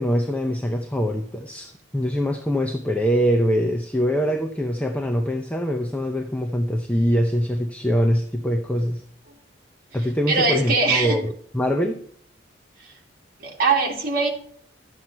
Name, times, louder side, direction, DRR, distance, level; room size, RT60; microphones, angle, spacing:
voice 1, 0.0-9.0 9.9-12.0, equal, 10° left, 3 dB, 0.7 m, -23 dB
voice 2, 10.3-11.2 12.8-12.9 13.4-14.3, right 3 dB, 50° right, -1 dB, 2.5 m, -21 dB
12.5 x 7.9 x 4.4 m, 0.63 s
head